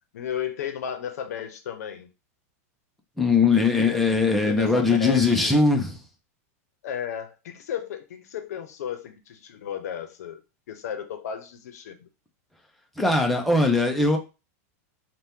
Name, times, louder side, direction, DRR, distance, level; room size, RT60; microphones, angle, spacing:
voice 1, 0.1-2.1 3.6-5.5 6.8-10.4 10.7-12.1, left 9 dB, 75° left, 0.6 m, -34 dB
voice 2, 3.2-6.0 13.0-14.2, left 3 dB, ahead, 0.4 m, -20 dB
2.7 x 2.2 x 3.4 m
supercardioid pair, 155°, 9 cm